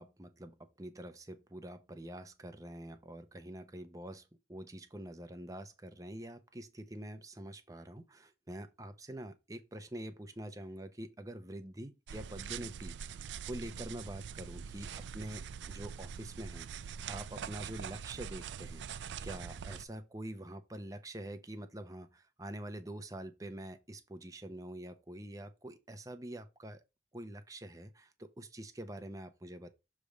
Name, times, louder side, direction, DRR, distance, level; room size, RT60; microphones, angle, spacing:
voice 1, 0.0-14.9 15.1-16.7 17.1-26.8 27.1-29.7, right 1 dB, 20° right, 0.7 m, -46 dB
sound 1, 12.1-19.9, right 7 dB, 75° right, 0.4 m, -44 dB
6.7 x 3.3 x 5.0 m
head